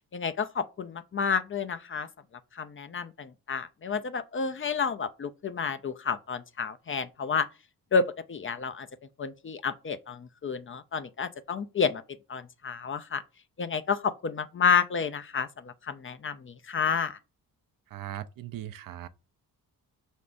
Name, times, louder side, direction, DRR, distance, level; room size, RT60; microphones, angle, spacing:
voice 1, 0.1-2.1 2.6-7.5 7.9-8.9 9.2-12.0 12.3-13.2 13.6-17.2, left 6 dB, 35° left, 0.5 m, -30 dB
voice 2, 17.9-19.1, right 12 dB, 60° right, 0.5 m, -39 dB
5.1 x 3.5 x 2.5 m
cardioid pair, 65°, 38 cm